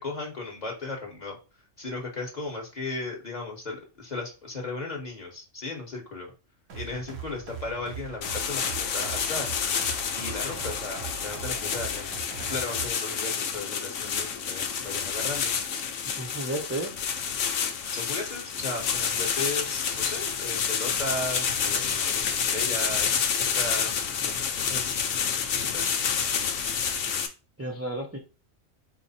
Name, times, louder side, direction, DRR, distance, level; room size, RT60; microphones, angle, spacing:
voice 1, 0.0-1.4 1.8-6.3 6.7-9.5 10.1-12.1 12.5-15.5 17.9-26.0, left 2 dB, 35° left, -1 dB, 1.3 m, -36 dB
sound 1, 6.7-12.9, right 6 dB, 85° right, 1.2 m, -41 dB
sound 2, 8.2-27.3, left 7 dB, 85° left, 1.0 m, -29 dB
voice 2, 16.1-17.0 27.6-28.2, right 1 dB, 15° right, -2 dB, 0.6 m, -32 dB
4.6 x 2.1 x 4.1 m, 0.31 s
omnidirectional pair, 1.3 m